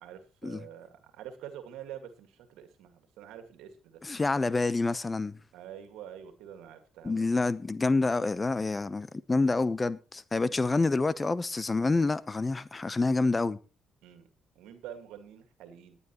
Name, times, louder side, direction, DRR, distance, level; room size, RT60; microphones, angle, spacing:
voice 1, 0.0-4.0 5.5-7.3 14.0-14.3 14.6-16.0, right 10 dB, 70° right, 1.9 m, -46 dB
voice 2, 4.0-5.4 7.0-13.6, left 3 dB, 30° left, 0.8 m, -27 dB
18.5 x 9.9 x 3.0 m
hypercardioid pair, 50°, 0 cm